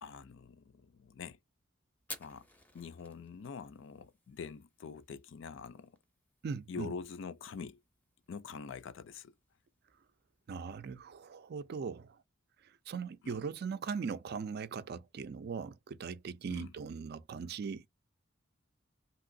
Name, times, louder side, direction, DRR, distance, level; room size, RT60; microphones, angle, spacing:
voice 1, 0.0-1.4 2.2-2.4 2.7-5.9 6.7-7.8 8.3-9.3 13.2-13.4 16.5-16.7, left 5 dB, 65° left, 0.4 m, -45 dB
Fire, 2.0-11.2, left 1 dB, 10° left, 0.5 m, -56 dB
voice 2, 6.4-6.9 10.5-12.1 12.9-17.9, right 5 dB, 55° right, 0.4 m, -39 dB
2.9 x 2.8 x 2.6 m
head